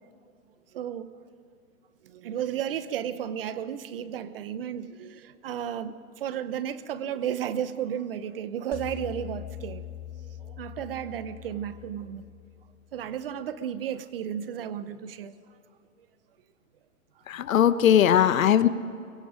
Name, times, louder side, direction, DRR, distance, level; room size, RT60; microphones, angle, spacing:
voice 1, 0.7-1.1 2.0-9.8 10.4-12.2 12.9-15.3, right 9 dB, 40° right, 0.9 m, -33 dB
sound 1, 8.7-13.0, left 10 dB, 20° left, 2.1 m, -42 dB
voice 2, 17.3-18.7, left 10 dB, 70° left, 1.0 m, -19 dB
24.0 x 23.0 x 5.1 m
hypercardioid pair, 165°, 42 cm